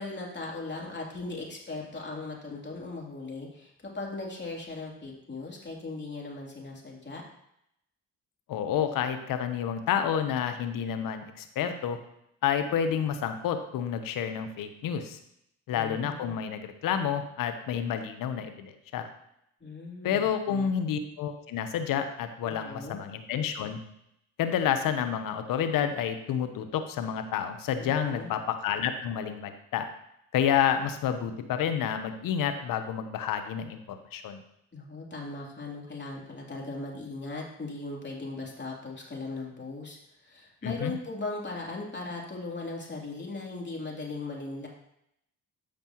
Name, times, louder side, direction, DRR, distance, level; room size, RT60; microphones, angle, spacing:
voice 1, 0.0-7.2 15.7-16.3 19.6-20.7 22.4-23.0 27.8-28.3 34.7-44.7, left 3 dB, 30° left, -2 dB, 3.2 m, -38 dB
voice 2, 8.5-12.0 12.4-15.2 15.7-19.1 20.0-23.8 24.4-29.9 30.3-34.4 40.6-40.9, left 8 dB, 70° left, 8 dB, 1.0 m, -29 dB
13.5 x 5.2 x 3.0 m, 0.77 s
hypercardioid pair, 50°, 34 cm